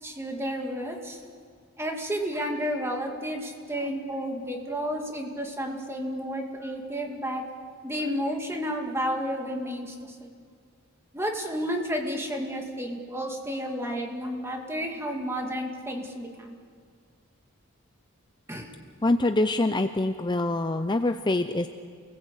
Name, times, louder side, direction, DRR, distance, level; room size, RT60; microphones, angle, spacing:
voice 1, 0.0-1.2 1.8-7.4 7.8-10.3 11.1-16.5 18.5-18.7, equal, 10° right, 2 dB, 2.3 m, -31 dB
voice 2, 19.0-21.7, left 2 dB, 20° left, 8 dB, 0.6 m, -25 dB
28.5 x 19.5 x 8.3 m, 2.1 s
head